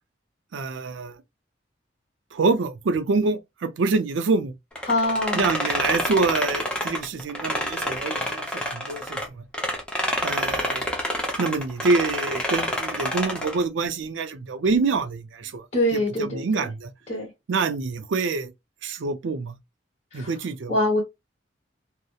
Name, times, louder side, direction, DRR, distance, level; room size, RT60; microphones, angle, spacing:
voice 1, 0.5-1.2 2.3-4.5 5.3-9.4 10.2-10.9 11.4-15.7 15.9-16.9 17.5-18.5 18.8-19.6 20.1-20.8, right 4 dB, 85° right, 0.4 m, -26 dB
sound 1, 4.8-9.3 9.5-13.6, left 1 dB, 5° left, 0.5 m, -28 dB
voice 2, 4.9-5.5 15.7-16.7 17.1-17.3 20.1-20.3 20.7-21.0, left 1 dB, 35° left, 1.1 m, -24 dB
2.7 x 2.0 x 2.3 m
head